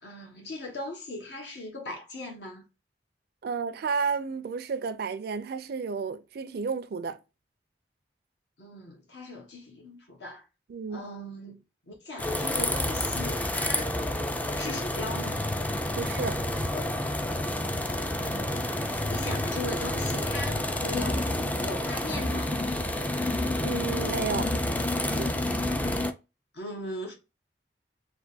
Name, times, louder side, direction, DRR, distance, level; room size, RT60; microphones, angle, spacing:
voice 1, 0.0-2.6 8.6-10.5 10.9-14.1 14.6-15.4 18.1-22.5 26.5-27.1, left 2 dB, 70° left, 1.2 m, -39 dB
voice 2, 3.4-7.2 10.7-11.1 16.0-16.4 23.6-25.3, right 5 dB, 60° right, 0.4 m, -32 dB
sound 1, 12.2-26.1, left 1 dB, 10° left, 0.3 m, -29 dB
3.3 x 2.2 x 4.0 m
head